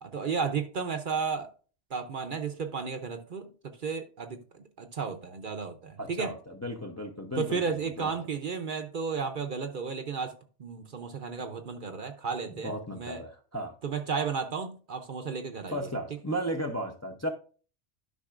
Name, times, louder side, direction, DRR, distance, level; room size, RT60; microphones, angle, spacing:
voice 1, 0.0-1.5 1.9-3.5 3.8-4.4 4.8-6.3 7.4-10.3 10.6-13.2 13.8-15.8, right 5 dB, 50° right, 0.8 m, -33 dB
voice 2, 6.0-8.1 12.6-13.8 15.7-17.3, equal, 20° left, 0.6 m, -35 dB
12.0 x 5.5 x 2.4 m
omnidirectional pair, 1.2 m